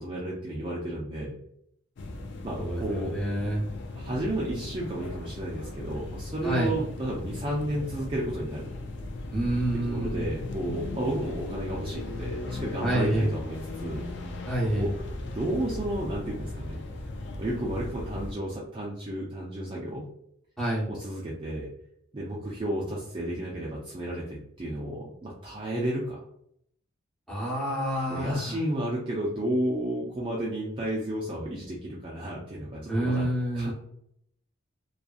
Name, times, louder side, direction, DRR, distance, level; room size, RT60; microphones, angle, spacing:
voice 1, 0.0-1.3 2.4-3.1 3.9-8.7 9.7-14.0 14.8-14.9 15.2-16.8 17.4-20.1 20.9-21.7 22.1-26.2 28.1-33.3 33.5-33.7, right 1 dB, 25° right, -5 dB, 0.4 m, -32 dB
sound 1, 2.0-18.3, left 2 dB, 60° left, 0.4 m, -37 dB
voice 2, 2.6-3.7 6.4-6.7 9.3-10.3 12.8-13.3 14.5-14.9 20.6-20.9 27.3-28.6 32.9-33.7, right 1 dB, ahead, -7 dB, 0.8 m, -28 dB
2.7 x 2.3 x 2.4 m, 0.72 s
head